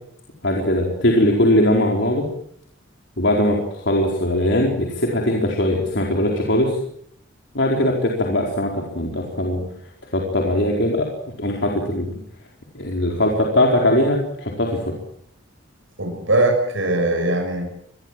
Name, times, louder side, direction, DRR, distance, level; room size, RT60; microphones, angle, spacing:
voice 1, 0.4-2.3 3.2-6.8 7.5-9.6 10.1-11.1 11.4-12.1 12.7-15.0, left 1 dB, 60° left, 0 dB, 4.7 m, -20 dB
voice 2, 16.0-17.6, right 2 dB, 75° right, 4 dB, 6.9 m, -20 dB
26.0 x 21.5 x 7.7 m, 0.68 s
head